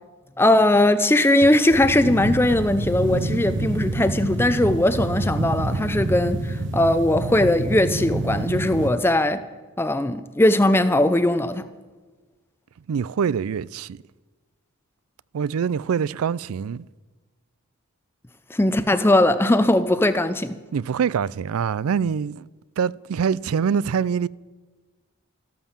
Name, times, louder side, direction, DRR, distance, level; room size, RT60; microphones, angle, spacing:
voice 1, 0.4-9.4 9.8-11.7 18.5-20.6, left 1 dB, 10° left, 0.5 m, -19 dB
sound 1, 1.4-8.9, right 2 dB, 60° right, 0.8 m, -27 dB
voice 2, 12.9-14.0 15.3-16.8 20.7-22.5 22.8-24.3, right 7 dB, 85° right, 0.4 m, -24 dB
14.0 x 12.5 x 7.3 m
head